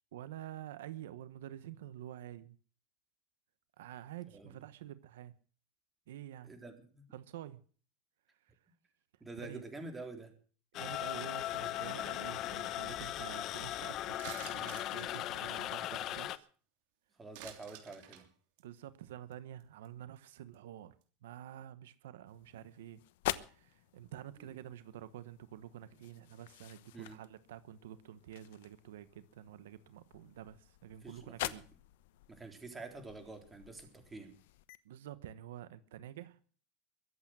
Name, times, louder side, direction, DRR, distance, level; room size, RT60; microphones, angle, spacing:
voice 1, 0.1-2.6 3.8-5.3 6.1-6.5 7.1-7.6 8.4-8.5 9.4-9.6 10.7-16.5 18.6-23.0 23.5-31.6 34.8-36.4, right 12 dB, 90° right, 1.0 m, -49 dB
voice 2, 6.4-7.1 9.2-10.3 17.2-18.3 24.4-24.5 26.9-27.2 31.0-31.6 32.3-34.3, right 3 dB, 15° right, 3.7 m, -48 dB
sound 1, 10.7-16.4, left 13 dB, 45° left, 0.9 m, -38 dB
sound 2, 14.2-16.3 17.3-18.2 18.6-18.8 19.3-19.4 19.6-19.9 20.2-20.3, right 12 dB, 70° right, 3.1 m, -50 dB
sound 3, 22.3-34.8, left 16 dB, 80° left, 1.0 m, -47 dB
22.5 x 8.5 x 6.1 m
supercardioid pair, 135°, 0 cm